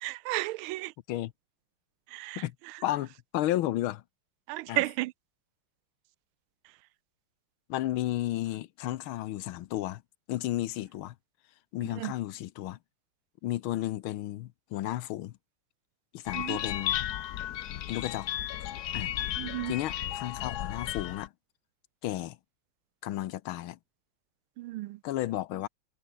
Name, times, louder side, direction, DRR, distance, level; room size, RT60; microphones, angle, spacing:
voice 1, 0.0-0.9 2.1-2.4 4.5-5.1 12.0-12.1 16.3-16.6 19.4-19.7 24.6-25.0, right 18 dB, 85° right, 1.4 m, -33 dB
voice 2, 2.8-4.0 4.7-4.8 7.7-10.0 10.3-11.1 11.7-12.8 13.4-15.3 16.1-17.0 17.9-18.3 18.9-19.1 19.7-21.3 22.0-22.4 23.0-23.8 25.0-25.7, left 14 dB, 90° left, 1.6 m, -33 dB
sound 1, 16.3-21.3, left 12 dB, 60° left, 1.1 m, -34 dB
omnidirectional pair, 2.2 m